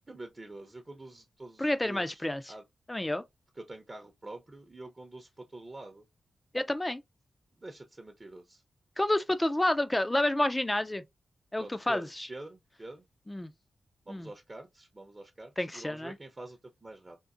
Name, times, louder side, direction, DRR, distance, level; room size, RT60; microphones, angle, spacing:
voice 1, 0.1-2.6 3.6-6.0 7.6-8.6 11.6-13.0 14.1-17.2, right 2 dB, 30° right, 0.7 m, -46 dB
voice 2, 1.6-2.4 2.9-3.2 6.5-7.0 9.0-11.0 11.5-12.3 13.3-13.5 14.1-14.3 15.6-16.1, left 1 dB, 15° left, 0.4 m, -29 dB
3.7 x 2.5 x 2.5 m
cardioid pair, 70°, 0 cm